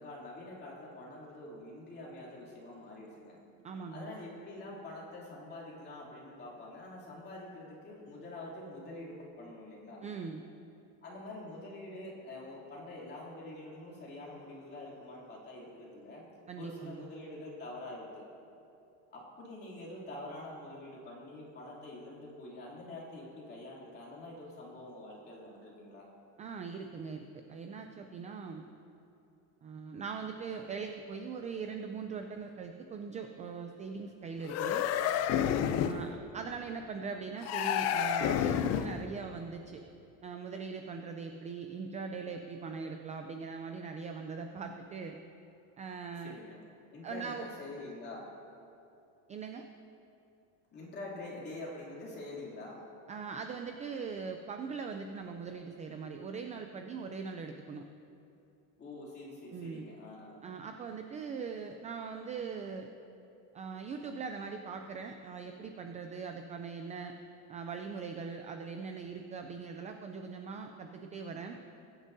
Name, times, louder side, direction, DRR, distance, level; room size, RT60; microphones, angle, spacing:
voice 1, 0.0-3.4 3.9-10.0 11.0-16.3 16.6-18.3 19.1-26.1 35.9-36.3 46.2-46.6 46.9-48.2 50.7-52.8 58.8-60.4, left 2 dB, 30° left, -4 dB, 2.8 m, -46 dB
voice 2, 3.6-4.1 10.0-10.4 16.5-17.0 26.4-28.6 29.6-34.9 35.8-39.8 40.2-45.2 45.8-46.4 47.0-47.5 49.3-49.6 53.1-57.8 59.5-59.9 60.4-62.9 63.5-67.1 67.5-71.6, right 5 dB, 20° right, 5 dB, 0.3 m, -41 dB
sound 1, 34.4-36.1 37.4-39.0, left 9 dB, 45° left, 0.5 m, -30 dB
20.5 x 9.9 x 2.7 m, 2.7 s
cardioid pair, 155°, 36 cm